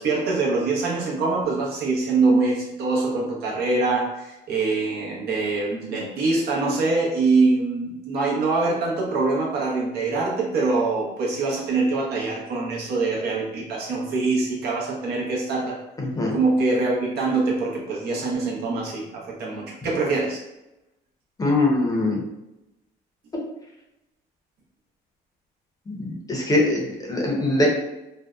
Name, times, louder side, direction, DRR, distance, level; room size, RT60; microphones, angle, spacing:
voice 1, 0.0-15.8 16.3-20.4, right 3 dB, 70° right, -2 dB, 0.8 m, -24 dB
voice 2, 16.0-16.4 21.4-22.2 25.9-27.7, left 2 dB, 20° left, -2 dB, 0.6 m, -22 dB
2.6 x 2.1 x 2.3 m, 0.93 s
cardioid pair, 110°, 17 cm